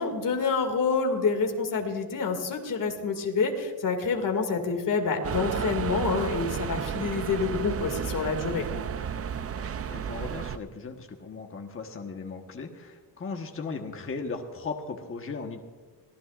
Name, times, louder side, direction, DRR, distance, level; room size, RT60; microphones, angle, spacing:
voice 1, 0.0-8.7, left 5 dB, 50° left, 3 dB, 2.4 m, -27 dB
sound 1, 5.2-10.6, right 8 dB, 35° right, 0.5 m, -32 dB
voice 2, 9.4-15.6, left 4 dB, 30° left, 3 dB, 1.3 m, -37 dB
24.0 x 16.5 x 2.5 m, 1.4 s
cardioid pair, 135°, 43 cm